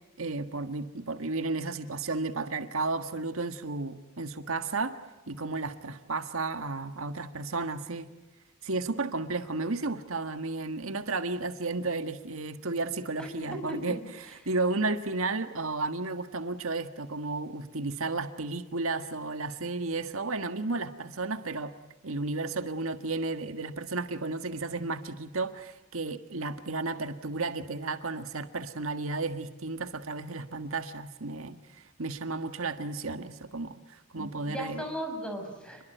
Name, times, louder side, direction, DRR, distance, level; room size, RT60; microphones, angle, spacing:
voice 1, 0.2-5.0 5.3-8.1 8.6-21.7 22.0-34.8, right 3 dB, 80° right, 9 dB, 1.6 m, -33 dB
voice 2, 13.2-14.0 34.1-35.8, equal, 5° left, 4 dB, 6.0 m, -37 dB
29.0 x 22.5 x 9.2 m, 1.0 s
head